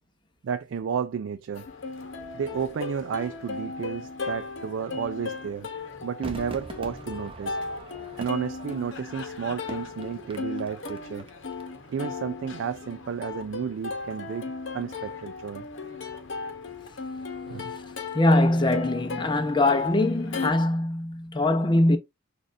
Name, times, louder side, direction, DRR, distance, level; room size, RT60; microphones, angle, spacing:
voice 1, 0.4-1.7 2.3-5.7 6.0-7.6 8.2-11.2 11.9-15.7 16.4-16.5 17.4-17.7, right 7 dB, 80° right, 0.3 m, -32 dB
Plucked string instrument, 1.5-20.5, left 4 dB, 70° left, 0.8 m, -36 dB
Crowd / Fireworks, 6.2-11.6 11.9-12.0, right 2 dB, 30° right, 0.7 m, -43 dB
voice 2, 18.1-22.0, left 2 dB, 25° left, 0.6 m, -22 dB
6.3 x 2.4 x 2.5 m
head